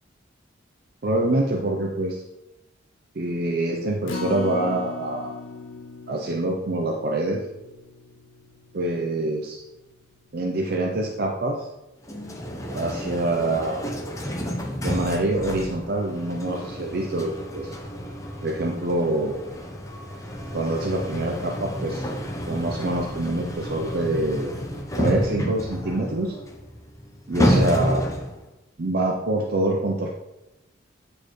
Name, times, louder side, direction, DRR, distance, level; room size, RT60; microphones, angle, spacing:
voice 1, 1.0-2.2 3.1-5.4 6.1-7.5 8.7-9.6 10.3-11.7 12.7-13.8 14.8-17.7 18.4-19.4 20.5-22.1 22.5-24.5 25.0-26.4 27.3-28.0 28.8-30.1, right 2 dB, 50° right, 0 dB, 0.6 m, -25 dB
Acoustic guitar, 4.1-10.4 10.8-10.9 11.3-11.4, left 3 dB, 75° left, 0.7 m, -39 dB
sound 1, 12.0-28.4, equal, 15° left, 0.7 m, -30 dB
8.4 x 4.4 x 3.1 m, 0.97 s
head